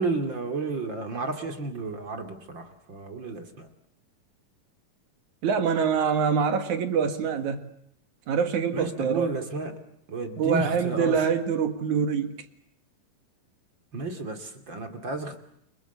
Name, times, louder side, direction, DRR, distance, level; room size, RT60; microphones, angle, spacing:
voice 1, 0.0-3.7 8.7-9.7 10.1-11.3 13.9-15.4, right 3 dB, 35° right, 7 dB, 2.8 m, -32 dB
voice 2, 5.4-7.6 8.3-9.3 10.4-12.4, right 6 dB, 60° right, 9 dB, 3.0 m, -25 dB
29.5 x 24.5 x 8.1 m, 0.74 s
omnidirectional pair, 4.0 m